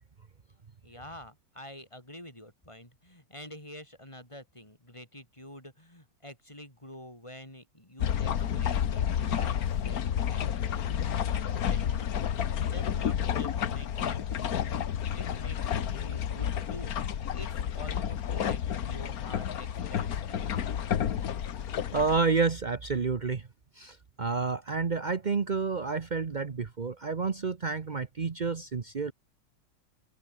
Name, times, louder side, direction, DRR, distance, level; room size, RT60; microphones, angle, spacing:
voice 1, 0.8-17.0 17.3-20.7, left 1 dB, 15° left, 6.4 m, -48 dB
sound 1, 8.0-22.2, left 9 dB, 50° left, 1.3 m, -30 dB
voice 2, 21.9-23.5 23.7-29.1, right 4 dB, 50° right, 0.5 m, -29 dB
omnidirectional pair, 2.4 m